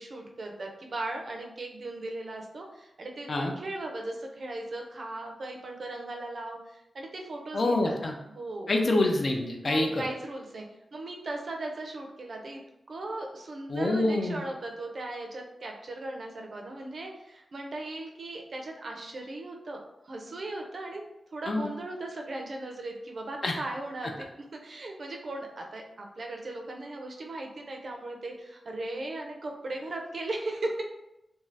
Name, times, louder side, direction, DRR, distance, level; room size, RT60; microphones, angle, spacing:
voice 1, 0.0-3.3 3.6-8.0 8.3-8.7 9.6-10.7 10.9-12.6 12.9-21.0 21.3-24.1 24.5-30.8, right 2 dB, 55° right, 2 dB, 0.5 m, -37 dB
voice 2, 7.5-8.1 8.7-10.0 13.7-14.4 21.5-21.7 23.4-23.6, left 2 dB, 45° left, 2 dB, 0.4 m, -26 dB
2.6 x 2.3 x 3.2 m, 0.88 s
wide cardioid pair, 130°, 0 cm